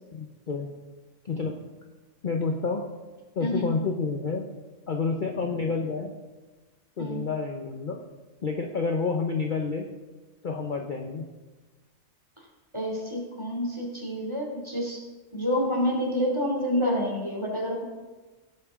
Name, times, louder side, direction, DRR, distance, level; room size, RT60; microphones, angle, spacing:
voice 1, 0.1-0.7 1.2-1.6 2.2-2.8 3.4-4.5 4.9-6.1 7.0-8.0 8.4-9.9 10.4-11.3, left 4 dB, 45° left, 3 dB, 0.8 m, -29 dB
voice 2, 12.7-15.0 15.3-17.8, equal, 20° right, -2 dB, 2.6 m, -28 dB
16.5 x 8.0 x 3.6 m, 1.2 s
omnidirectional pair, 1.4 m